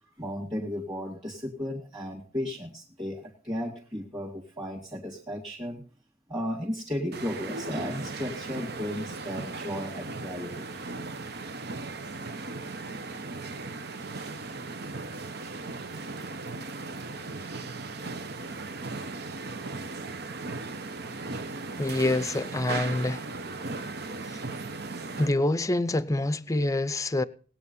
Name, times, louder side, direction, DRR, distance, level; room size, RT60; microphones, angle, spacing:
voice 1, 0.2-5.8 6.3-10.7, equal, 20° right, 2.2 m, -34 dB
sound 1, 7.1-25.4, right 3 dB, 55° right, 0.9 m, -37 dB
voice 2, 21.8-23.2 24.3-24.4 25.2-27.2, left 2 dB, 15° left, 0.6 m, -26 dB
19.5 x 8.5 x 5.5 m
head